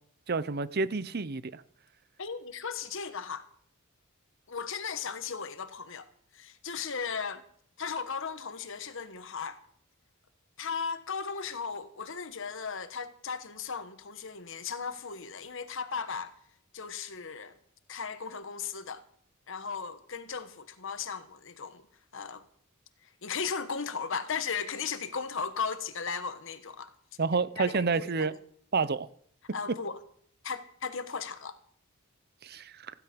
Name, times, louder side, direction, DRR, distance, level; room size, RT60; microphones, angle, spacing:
voice 1, 0.3-1.6 27.2-28.3 28.7-29.1 32.4-32.9, right 4 dB, 45° right, 0.7 m, -29 dB
voice 2, 2.2-3.5 4.5-7.4 7.8-9.6 10.6-16.4 16.7-17.6 17.9-19.0 19.5-21.9 22.1-22.4 23.0-26.9 27.6-28.4 29.5-30.0 30.4-31.6, left 5 dB, 60° left, 1.2 m, -36 dB
15.5 x 13.0 x 5.3 m
head